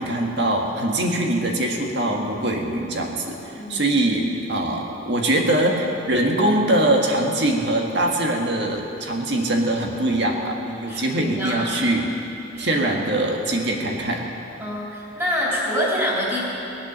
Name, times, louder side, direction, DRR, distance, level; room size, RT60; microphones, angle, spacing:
voice 1, 0.0-12.1 12.6-14.3, right 1 dB, 60° right, 1 dB, 1.8 m, -22 dB
voice 2, 10.8-11.7 12.5-13.0 14.6-16.4, equal, 10° right, -6 dB, 4.0 m, -26 dB
20.5 x 8.3 x 7.4 m, 3.0 s
head